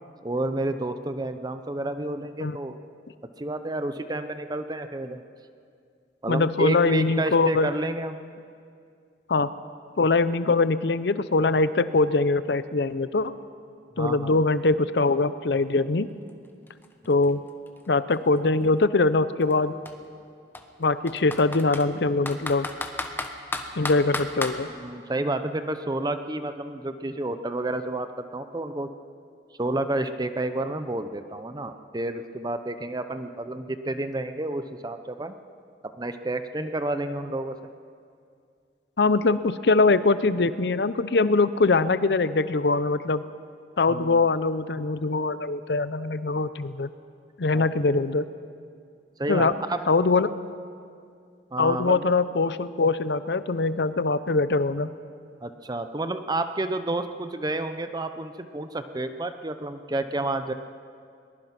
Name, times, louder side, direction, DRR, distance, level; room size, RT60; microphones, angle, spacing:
voice 1, 0.2-2.7 3.4-5.2 6.2-8.2 14.0-14.3 24.8-28.9 29.6-35.4 36.0-37.7 43.9-44.2 47.5-47.7 49.2-49.8 51.5-52.1 55.4-60.5, right 2 dB, 25° right, 9 dB, 0.7 m, -30 dB
voice 2, 6.3-7.7 9.3-9.5 10.0-13.3 14.0-16.1 17.1-17.4 17.9-19.7 20.8-22.7 23.8-24.7 39.0-43.2 43.8-46.9 47.4-48.3 49.3-49.5 49.9-50.3 51.6-54.9, left 3 dB, 70° left, 14 dB, 0.7 m, -22 dB
Computer keyboard, 16.3-16.4 16.7-18.6 19.4-19.5 19.9-20.0 20.5-21.9 22.3-24.6, left 2 dB, 10° left, 1.2 m, -33 dB
22.0 x 20.5 x 6.0 m, 2.3 s
head